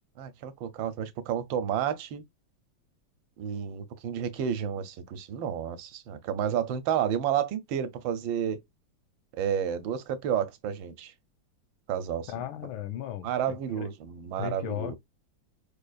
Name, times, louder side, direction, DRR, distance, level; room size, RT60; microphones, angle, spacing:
voice 1, 0.2-2.2 3.4-8.6 9.4-11.1 11.9-12.3 13.2-15.0, right 9 dB, 75° right, 1.3 m, -31 dB
voice 2, 12.3-13.9 14.4-15.0, left 11 dB, 85° left, 1.5 m, -36 dB
4.9 x 2.4 x 2.4 m
omnidirectional pair, 2.2 m